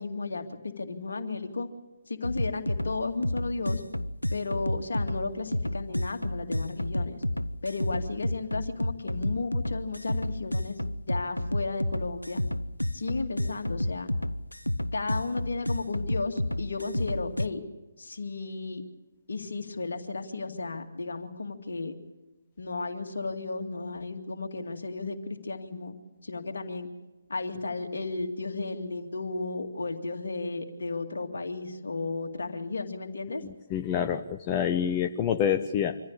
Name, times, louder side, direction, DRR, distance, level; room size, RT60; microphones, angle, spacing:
voice 1, 0.0-1.7 2.1-3.8 4.3-7.2 7.6-10.8 11.1-12.4 12.9-14.1 14.9-17.6 18.0-18.8 19.3-21.9 22.6-26.0 26.2-26.9 27.3-33.4, left 3 dB, 60° left, 5 dB, 2.2 m, -34 dB
sound 1, 2.2-17.5, left 1 dB, 85° left, 0.6 m, -31 dB
voice 2, 33.4-36.0, left 9 dB, 20° left, 7 dB, 0.7 m, -27 dB
25.0 x 15.0 x 8.7 m, 1.1 s
figure-of-eight pair, 140°, 0 cm